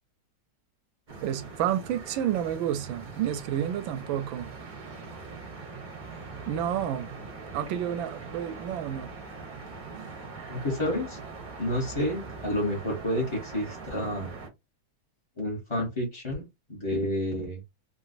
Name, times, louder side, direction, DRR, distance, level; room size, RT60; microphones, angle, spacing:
sound 1, 1.1-14.5, right 4 dB, 40° right, 0.6 m, -42 dB
voice 1, 1.2-4.5 6.5-7.1 7.5-9.1 9.9-10.2, right 10 dB, 75° right, 1.3 m, -30 dB
voice 2, 10.5-11.2 11.6-14.3 15.4-16.4 16.7-17.6, left 1 dB, 25° left, 0.7 m, -30 dB
3.8 x 2.2 x 2.5 m
omnidirectional pair, 2.2 m